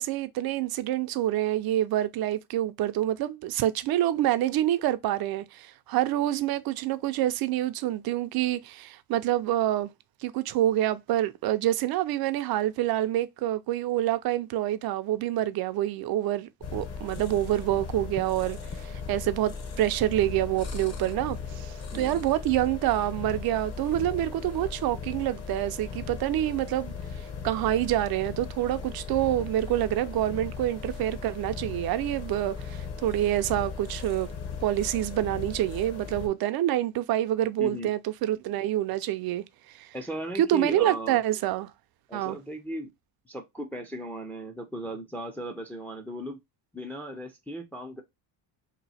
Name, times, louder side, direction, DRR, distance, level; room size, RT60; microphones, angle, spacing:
voice 1, 0.0-9.9 10.2-26.9 27.4-34.3 34.6-39.9 40.4-41.7 42.1-42.4, right 13 dB, 55° right, 0.5 m, -27 dB
sound 1, 16.6-36.3, left 5 dB, 35° left, 0.9 m, -38 dB
voice 2, 37.6-37.9 39.9-41.2 42.1-42.9 43.3-46.4 46.7-48.0, right 1 dB, 5° left, 0.5 m, -37 dB
2.9 x 2.7 x 4.1 m
cardioid pair, 130°, 45 cm